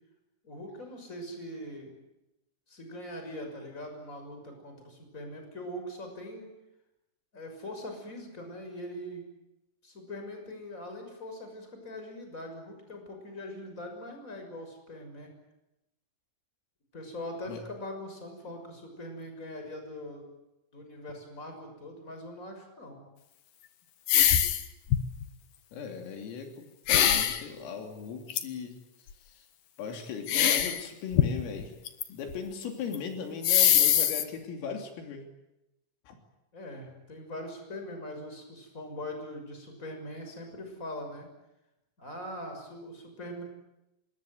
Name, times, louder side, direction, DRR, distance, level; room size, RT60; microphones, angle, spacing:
voice 1, 0.4-1.9 2.7-6.5 7.3-9.3 9.8-15.3 16.9-20.3 20.7-23.0 36.5-41.3 42.0-43.4, left 1 dB, 15° left, 4 dB, 6.3 m, -42 dB
sound 1, 24.1-24.6 24.9-25.2 26.9-27.4 28.3-28.4 30.3-30.8 31.1-32.0 32.3-32.4 32.9-33.0 33.4-34.2, left 10 dB, 65° left, 2.2 m, -23 dB
voice 2, 25.7-28.8 29.3-29.5 29.8-31.7 32.1-35.2 36.1-36.2, left 6 dB, 80° left, 4 dB, 5.7 m, -38 dB
26.5 x 21.5 x 9.5 m, 0.92 s
omnidirectional pair, 5.9 m